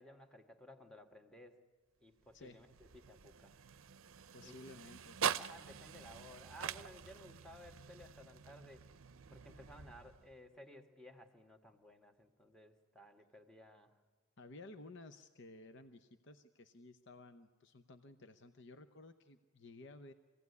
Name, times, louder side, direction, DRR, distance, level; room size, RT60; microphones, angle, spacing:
voice 1, 0.0-1.6 2.0-3.6 4.4-4.6 5.4-8.9 9.3-14.0, equal, 5° left, 4 dB, 1.4 m, -57 dB
sound 1, 2.2-10.5, right 8 dB, 70° right, 0.6 m, -44 dB
voice 2, 4.3-5.4 14.4-20.1, left 2 dB, 55° left, 9 dB, 0.8 m, -55 dB
25.0 x 16.5 x 9.5 m, 1.4 s
head